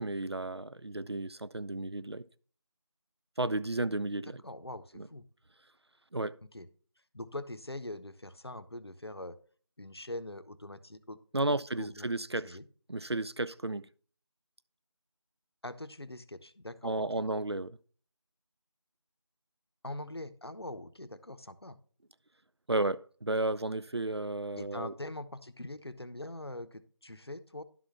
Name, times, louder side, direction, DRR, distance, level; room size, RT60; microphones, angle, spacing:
voice 1, 0.0-2.3 3.4-4.4 4.9-5.1 6.1-6.4 11.3-12.6 12.9-13.9 16.8-17.8 22.7-25.0, right 2 dB, 60° right, 0.4 m, -33 dB
voice 2, 4.4-5.2 6.5-6.7 7.1-9.4 9.8-11.2 11.5-12.1 12.4-12.6 15.6-17.2 19.8-21.8 24.6-27.6, left 1 dB, 55° left, 0.8 m, -43 dB
11.5 x 4.1 x 5.8 m
figure-of-eight pair, 175°, 15 cm